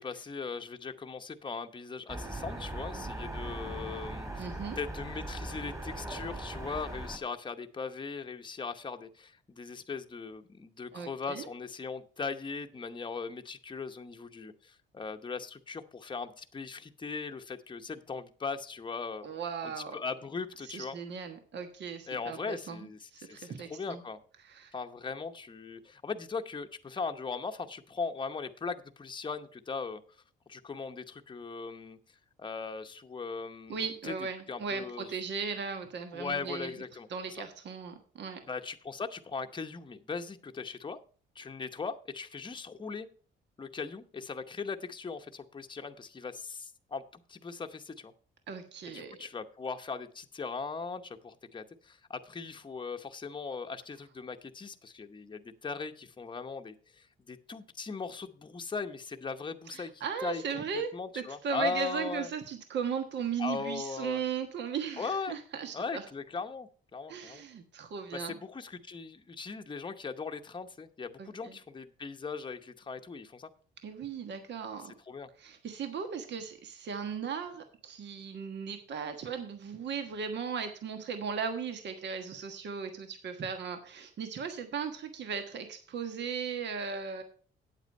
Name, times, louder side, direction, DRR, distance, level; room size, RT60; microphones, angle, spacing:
voice 1, 0.0-4.5 4.8-19.3 19.6-21.0 22.1-24.2 24.7-30.0 30.5-32.0 32.4-34.1 34.5-35.1 36.1-37.4 38.5-41.0 41.4-43.1 43.6-48.1 48.9-60.4 60.9-62.3 63.4-64.2 65.0-65.4 65.7-67.4 68.1-73.5 75.1-75.3, left 4 dB, 25° left, 6 dB, 0.8 m, -39 dB
sound 1, 2.1-7.2, right 1 dB, 15° right, 2.1 m, -39 dB
voice 2, 4.4-4.8 10.9-11.5 19.2-20.0 20.6-24.0 24.4-24.7 33.7-36.7 37.1-38.4 48.5-49.2 59.7-66.1 67.1-68.4 71.2-71.6 73.8-74.9 75.4-87.2, right 6 dB, 60° right, 7 dB, 1.4 m, -37 dB
8.8 x 8.1 x 5.4 m, 0.42 s
cardioid pair, 90°, 20 cm